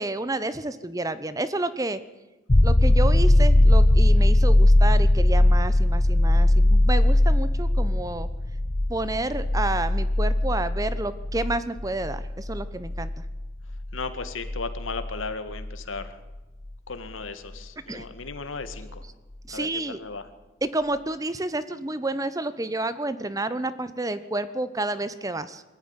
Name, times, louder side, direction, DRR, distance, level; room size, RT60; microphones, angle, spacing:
voice 1, 0.0-2.0 2.6-8.3 8.9-13.1 17.9-18.1 19.5-20.0 20.6-25.6, right 2 dB, 15° right, 14 dB, 0.9 m, -30 dB
sound 1, 2.5-16.0 18.7-18.8, left 1 dB, 35° left, 0.8 m, -20 dB
voice 2, 13.9-16.2 16.9-19.1 19.5-20.3, left 4 dB, 90° left, 10 dB, 1.9 m, -36 dB
23.0 x 14.0 x 9.8 m, 1.1 s
head